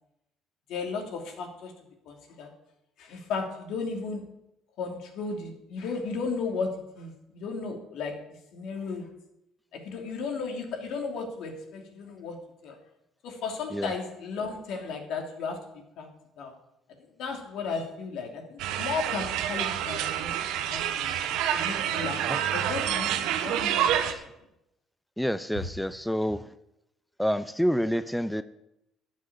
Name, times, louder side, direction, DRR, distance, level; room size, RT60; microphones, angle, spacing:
voice 1, 0.7-1.7 2.1-2.5 3.0-4.2 4.8-6.7 7.0-8.1 8.5-9.1 9.8-12.3 12.6-12.8 13.2-15.6 16.0-16.1 16.4-16.5 17.2-21.1 21.5-23.9, left 4 dB, 70° left, 3 dB, 2.8 m, -34 dB
sound 1, 18.6-24.1, right 10 dB, 80° right, 1.2 m, -28 dB
voice 2, 25.2-26.4 27.2-28.4, equal, ahead, 13 dB, 0.5 m, -28 dB
12.0 x 6.5 x 9.5 m, 0.86 s
cardioid pair, 90°, 0 cm